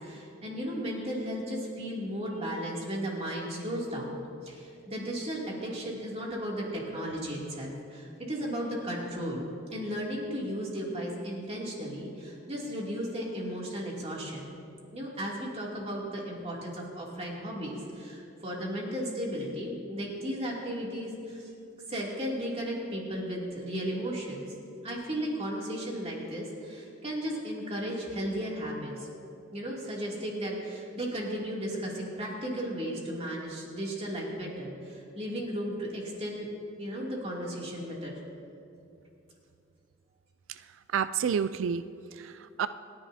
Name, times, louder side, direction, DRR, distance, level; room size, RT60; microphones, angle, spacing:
voice 1, 0.0-14.6 14.9-21.5 21.9-24.5 24.8-29.1 29.5-36.5 36.8-38.1, equal, 30° right, -3 dB, 2.7 m, -35 dB
voice 2, 40.5-41.9 42.1-42.7, right 7 dB, 75° right, 13 dB, 0.3 m, -30 dB
28.0 x 10.5 x 2.8 m, 2.6 s
head